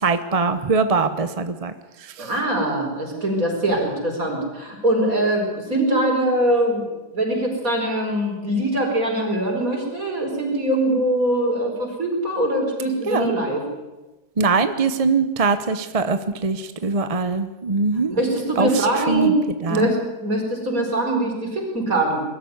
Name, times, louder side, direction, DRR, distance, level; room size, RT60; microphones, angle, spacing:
voice 1, 0.0-1.7 2.0-2.3 13.1-13.3 14.4-18.1 18.6-19.3 19.6-19.9, right 4 dB, 30° right, 10 dB, 0.7 m, -22 dB
voice 2, 2.2-6.9 7.1-13.6 18.1-19.4 19.7-22.2, right 1 dB, 55° right, 1 dB, 5.1 m, -22 dB
22.0 x 13.0 x 9.5 m, 1.1 s
omnidirectional pair, 1.8 m